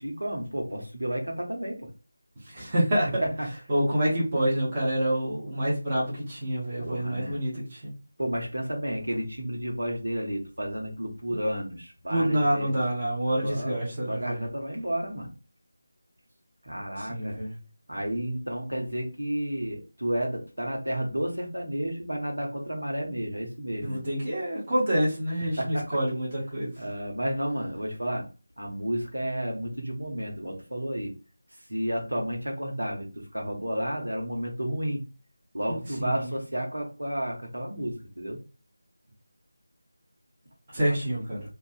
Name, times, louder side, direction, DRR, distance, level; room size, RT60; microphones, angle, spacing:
voice 1, 0.0-1.9 3.2-3.5 6.8-7.4 8.2-12.8 13.4-13.8 14.1-15.3 16.6-17.4 17.9-24.0 25.6-25.9 26.8-28.3 28.6-31.1 31.7-35.0 35.5-38.4 40.9-41.0, equal, 75° right, 1 dB, 0.9 m, -31 dB
voice 2, 2.5-3.2 3.7-7.8 11.3-11.4 12.1-14.4 17.0-17.5 23.8-26.7 35.7-36.3 40.7-41.4, right 1 dB, 25° right, -7 dB, 0.9 m, -27 dB
2.5 x 2.3 x 2.5 m, 0.33 s
figure-of-eight pair, 165°, 0 cm